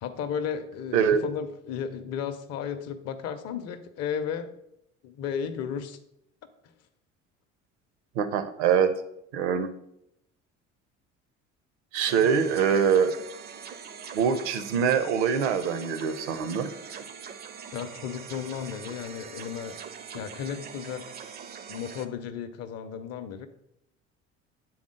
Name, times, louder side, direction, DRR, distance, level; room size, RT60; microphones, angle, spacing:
voice 1, 0.0-4.5 5.0-6.0 12.2-12.8 17.7-19.8 20.1-21.2 21.7-23.5, left 8 dB, 45° left, 10 dB, 0.6 m, -34 dB
voice 2, 8.2-8.9 9.3-9.7 11.9-13.1 14.1-16.7, right 7 dB, 60° right, 11 dB, 0.7 m, -24 dB
sound 1, 12.1-22.1, right 7 dB, 25° right, 0.5 m, -43 dB
7.7 x 3.7 x 3.7 m, 0.78 s
figure-of-eight pair, 55°, 37 cm